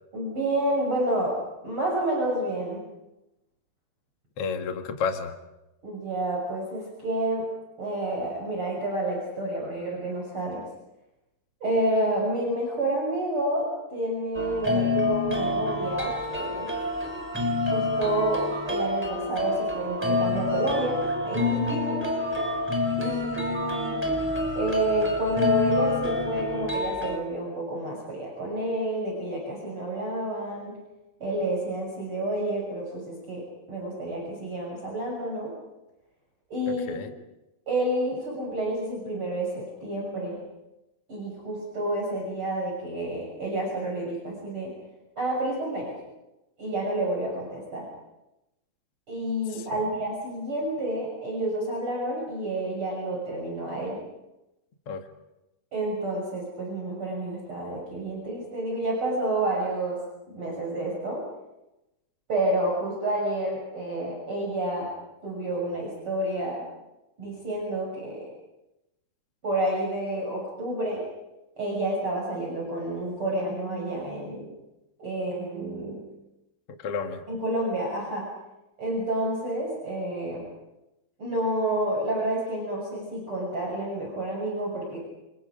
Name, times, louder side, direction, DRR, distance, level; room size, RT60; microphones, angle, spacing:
voice 1, 0.1-1.4 1.6-2.8 5.8-7.5 7.8-10.6 11.6-16.7 17.7-21.0 21.2-22.0 23.0-24.0 24.6-30.8 31.2-33.4 33.7-35.5 36.5-37.1 37.7-40.4 41.1-44.7 45.2-46.0 46.6-47.9 49.1-54.0 55.7-60.0 60.3-61.2 62.3-64.9 65.2-66.7 67.2-68.3 69.4-71.1 71.6-74.5 75.0-76.1 77.3-78.3 78.8-80.4 81.2-85.0, right 1 dB, 30° right, -3 dB, 7.0 m, -29 dB
voice 2, 4.4-5.3 36.9-37.1 49.5-49.8 54.9-55.0 76.8-77.2, left 5 dB, 60° left, 5 dB, 1.5 m, -31 dB
sound 1, 14.3-27.2, left 2 dB, 5° right, 3.1 m, -27 dB
29.5 x 28.0 x 5.2 m, 0.95 s
omnidirectional pair, 5.3 m